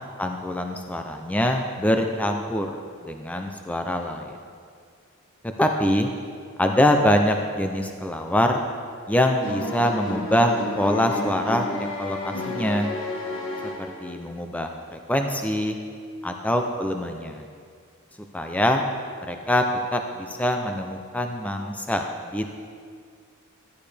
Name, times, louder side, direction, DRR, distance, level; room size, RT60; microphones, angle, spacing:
voice 1, 0.2-2.7 3.1-4.4 5.6-6.1 6.6-8.6 9.1-12.9 14.0-15.8 16.2-17.4 18.3-18.8 19.3-19.6 19.9-22.5, left 1 dB, 5° left, 4 dB, 0.4 m, -24 dB
sound 1, 9.4-14.3, left 2 dB, 65° left, 1.6 m, -31 dB
13.5 x 10.5 x 3.4 m, 2.1 s
head